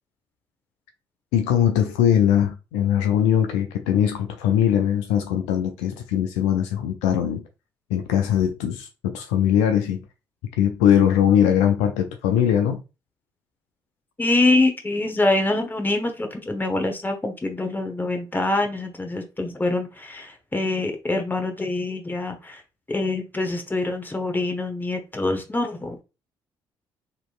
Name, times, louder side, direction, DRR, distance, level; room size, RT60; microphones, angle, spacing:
voice 1, 1.3-7.4 7.9-10.0 10.6-12.8, left 9 dB, 70° left, 0.5 m, -21 dB
voice 2, 14.2-22.6 22.9-26.0, left 2 dB, 15° left, 1.0 m, -25 dB
4.0 x 3.0 x 2.4 m
figure-of-eight pair, 45°, 12 cm